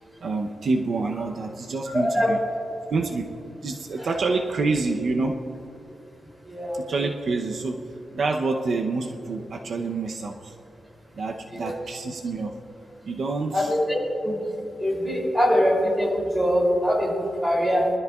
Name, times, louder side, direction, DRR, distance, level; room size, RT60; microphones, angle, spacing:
voice 1, 0.2-2.4 2.9-3.3 3.6-5.5 6.7-10.6 11.1-12.5 13.1-13.7, right 3 dB, 60° right, 2 dB, 0.7 m, -27 dB
voice 2, 1.9-2.3 4.0-4.1 6.4-6.8 11.6-11.7 13.5-14.4 14.8-17.9, equal, ahead, -3 dB, 3.0 m, -23 dB
23.5 x 13.0 x 2.4 m, 2.7 s
wide cardioid pair, 165°, 0 cm